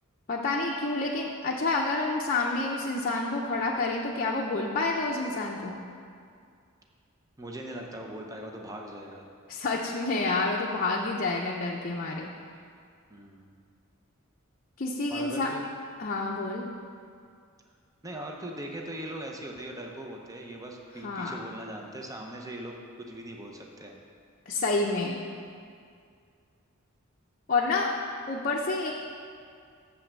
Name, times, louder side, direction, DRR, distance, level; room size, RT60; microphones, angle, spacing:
voice 1, 0.3-5.8 9.5-12.3 14.8-15.5 16.0-16.7 21.0-21.4 24.5-25.2 27.5-27.9 28.3-28.9, left 3 dB, 40° left, -2 dB, 0.6 m, -28 dB
voice 2, 7.4-9.2 13.1-13.6 15.1-15.6 18.0-24.0, right 1 dB, 15° right, 1 dB, 0.7 m, -40 dB
7.0 x 5.5 x 7.4 m, 2.3 s
head